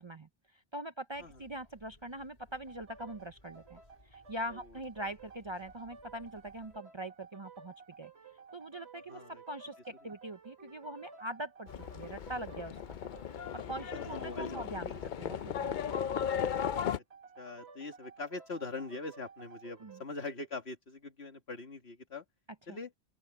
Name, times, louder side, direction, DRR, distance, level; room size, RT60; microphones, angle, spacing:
voice 1, 0.0-3.8 4.0-8.1 8.5-13.0 13.5-16.2 19.8-20.0 22.7-22.8, right 1 dB, 30° right, 0.6 m, -43 dB
sound 1, 1.1-6.8, left 1 dB, 35° left, 3.1 m, -63 dB
sound 2, 2.7-20.1, right 5 dB, 80° right, 1.9 m, -54 dB
voice 2, 9.1-9.4 13.9-15.0 16.9-17.0 17.4-22.2 22.7-22.9, left 3 dB, 75° left, 2.5 m, -42 dB
Livestock farm animals working animals, 11.7-17.0, left 8 dB, 55° left, 0.6 m, -36 dB
open air
omnidirectional pair, 1.1 m